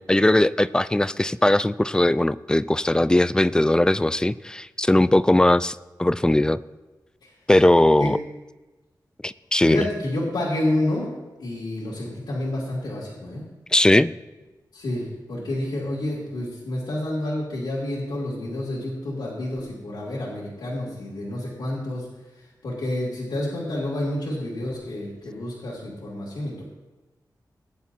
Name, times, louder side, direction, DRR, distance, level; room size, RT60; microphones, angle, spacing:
voice 1, 0.0-6.6 7.5-8.2 9.2-9.8 13.7-14.1, left 1 dB, 10° left, 16 dB, 0.3 m, -19 dB
voice 2, 9.6-11.1 11.4-13.5 14.7-22.1 22.6-26.6, left 1 dB, 85° left, -7 dB, 2.7 m, -29 dB
19.0 x 9.5 x 2.8 m, 1.1 s
wide cardioid pair, 105°, 7 cm